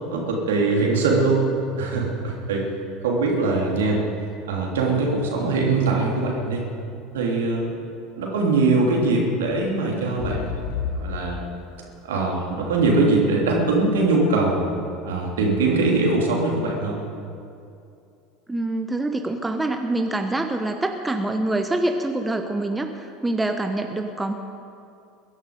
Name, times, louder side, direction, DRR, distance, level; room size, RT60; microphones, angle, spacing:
voice 1, 0.1-1.4 1.8-2.7 3.0-4.0 4.4-6.6 7.1-7.7 8.2-10.6 11.0-11.4 12.0-14.7 15.0-17.0, right 3 dB, 65° right, -1 dB, 3.1 m, -22 dB
sound 1, 10.2-14.1 14.6-14.7, left 6 dB, 60° left, 1.0 m, -32 dB
voice 2, 18.5-24.3, right 2 dB, 10° right, 5 dB, 1.0 m, -25 dB
21.5 x 11.0 x 5.3 m, 2.6 s
figure-of-eight pair, 70°, 0 cm